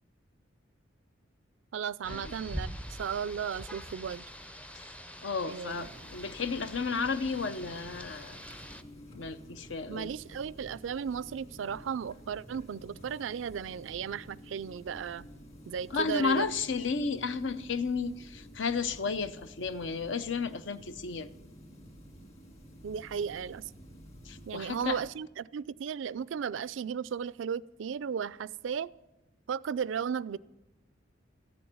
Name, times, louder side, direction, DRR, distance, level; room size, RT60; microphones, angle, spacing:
voice 1, 1.7-4.3 5.5-5.8 9.9-15.3 15.7-16.5 22.8-23.7 24.5-28.9 29.5-30.4, right 7 dB, 70° right, 0.4 m, -35 dB
Rain, 2.0-8.8, equal, 5° left, 0.5 m, -44 dB
voice 2, 5.2-8.4 9.1-10.1 15.9-21.3 24.2-25.0, left 4 dB, 65° left, 0.7 m, -33 dB
sound 1, 5.6-25.1, equal, 35° left, 2.5 m, -51 dB
14.0 x 7.1 x 9.4 m
head